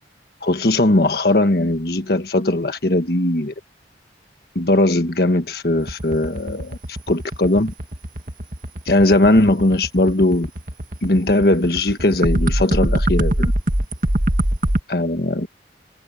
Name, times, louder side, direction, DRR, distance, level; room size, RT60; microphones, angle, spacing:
voice 1, 0.4-3.5 4.5-6.8 7.1-7.7 8.8-10.5 11.0-13.5 14.9-15.5, left 1 dB, 60° left, 1.5 m, -18 dB
sound 1, 5.8-14.8, right 1 dB, 50° right, 2.0 m, -22 dB
head